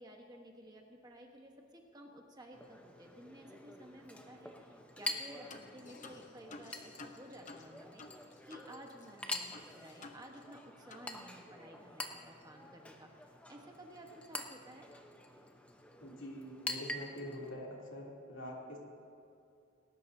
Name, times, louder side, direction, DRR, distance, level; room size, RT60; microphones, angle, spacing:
voice 1, 0.0-13.1 13.5-14.9, right 1 dB, 20° right, 1 dB, 1.2 m, -54 dB
Chink clink, 2.5-17.5, left 1 dB, 5° left, 0.8 m, -46 dB
sound 1, 5.0-5.2 5.5-8.7 9.0-9.1 9.5-10.6 10.9-11.1, left 3 dB, 35° left, 0.8 m, -53 dB
voice 2, 16.0-18.8, equal, 60° left, -3 dB, 3.0 m, -45 dB
19.5 x 18.0 x 2.7 m, 2.6 s
head